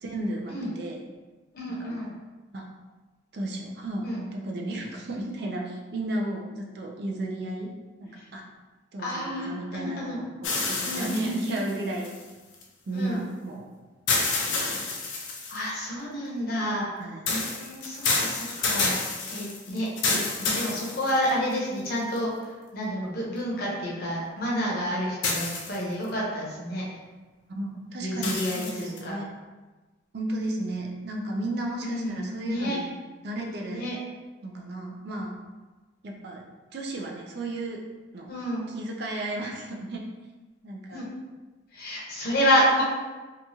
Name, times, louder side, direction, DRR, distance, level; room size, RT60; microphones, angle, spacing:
voice 1, 0.0-1.0 1.7-2.0 2.5-2.7 3.3-4.0 4.3-7.7 8.0-8.4 8.9-12.1 12.9-13.7 14.5-14.9 17.0-17.4 27.5-29.3 30.1-32.9 33.2-33.9 34.4-35.3 36.0-36.4 36.7-37.8 38.1-38.3 38.7-40.0 40.6-41.1, right 1 dB, 55° right, 1 dB, 0.4 m, -33 dB
voice 2, 1.5-2.1 4.0-4.2 9.0-10.2 10.8-11.3 12.9-13.2 15.5-16.9 17.3-18.9 19.3-22.3 22.7-26.8 28.0-29.2 31.8-32.8 33.7-34.0 38.3-38.7 40.9-41.1 41.7-42.8, equal, 50° left, -5 dB, 0.8 m, -29 dB
sound 1, 10.4-12.6 14.1-15.7 17.3-21.5 22.2-22.3 25.2-26.1 28.2-29.0, left 3 dB, 75° left, 0.5 m, -29 dB
2.9 x 2.3 x 2.7 m, 1.2 s
head